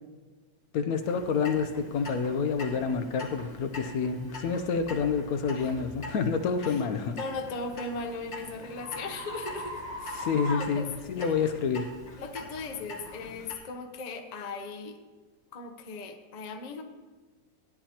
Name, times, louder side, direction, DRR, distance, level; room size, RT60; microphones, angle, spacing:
voice 1, 0.7-7.2 10.1-11.9, left 5 dB, 70° left, 7 dB, 0.9 m, -28 dB
Clock, 1.0-13.5, left 2 dB, 40° left, 1.9 m, -44 dB
sound 1, 2.7-2.8 3.4-3.6 4.2-4.4 7.0-11.5, right 1 dB, 25° right, 0.5 m, -42 dB
voice 2, 7.2-10.9 11.2-11.3 12.2-15.0 15.5-16.8, left 3 dB, 85° left, 5 dB, 0.3 m, -38 dB
14.5 x 10.0 x 2.8 m, 1.3 s
omnidirectional pair, 2.0 m